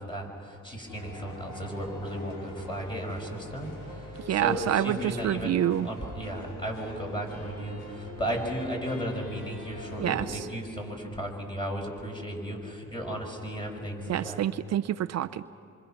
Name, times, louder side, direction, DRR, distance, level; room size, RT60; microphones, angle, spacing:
voice 1, 0.0-14.4, equal, 15° left, 1 dB, 5.8 m, -35 dB
sound 1, 0.9-10.3, equal, 90° left, 5.5 m, -44 dB
voice 2, 4.3-5.9 10.0-10.5 14.1-15.4, right 11 dB, 60° right, 10 dB, 0.5 m, -27 dB
26.5 x 26.0 x 5.9 m, 2.7 s
cardioid pair, 90°, 30 cm